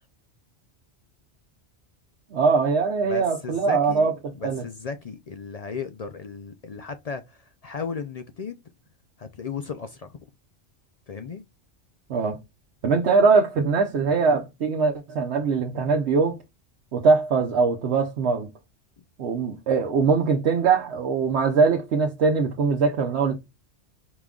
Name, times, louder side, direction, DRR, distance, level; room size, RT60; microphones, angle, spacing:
voice 1, 2.3-4.1 4.4-4.6 12.1-12.4 12.8-16.4 16.9-18.5 19.2-23.3, right 4 dB, 70° right, 1.0 m, -22 dB
voice 2, 3.1-8.6 9.2-10.2 11.1-11.4, left 5 dB, 60° left, 0.4 m, -35 dB
4.9 x 3.6 x 2.3 m
omnidirectional pair, 1.2 m